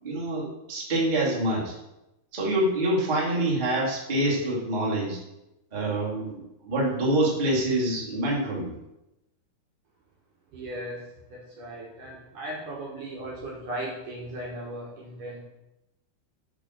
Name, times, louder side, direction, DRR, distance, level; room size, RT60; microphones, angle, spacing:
voice 1, 0.0-1.7 2.3-5.2 5.7-8.7, right 1 dB, 15° right, -5 dB, 1.7 m, -26 dB
voice 2, 10.5-15.5, right 1 dB, 60° right, -3 dB, 2.6 m, -37 dB
7.2 x 6.3 x 6.4 m, 0.92 s
omnidirectional pair, 4.9 m